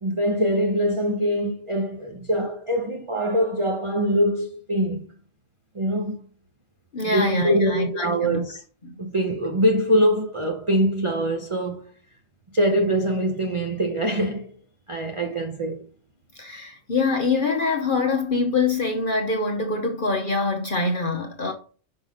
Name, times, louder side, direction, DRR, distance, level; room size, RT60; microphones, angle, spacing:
voice 1, 0.0-5.1 5.7-6.2 7.1-8.6 9.0-11.9 12.5-14.5 14.9-15.9, equal, 30° right, 0.7 m, -23 dB
voice 2, 6.9-8.4 8.8-8.9 16.4-21.5, left 3 dB, 45° left, 0.9 m, -24 dB
5.9 x 5.4 x 4.8 m
omnidirectional pair, 1.4 m